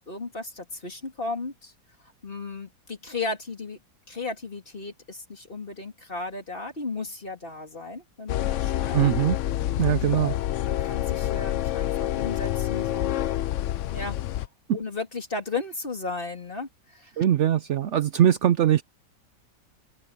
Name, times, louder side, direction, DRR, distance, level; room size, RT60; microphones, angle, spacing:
voice 1, 0.0-1.7 2.2-3.8 4.1-9.0 9.6-13.2 13.9-14.2 14.7-17.1, left 3 dB, 30° left, 3.2 m, -35 dB
sound 1, 8.3-14.5, left 13 dB, 85° left, 0.6 m, -27 dB
voice 2, 8.9-9.4 9.8-10.3 14.7-14.8 17.2-18.8, right 11 dB, 90° right, 0.6 m, -21 dB
open air
omnidirectional pair, 1.9 m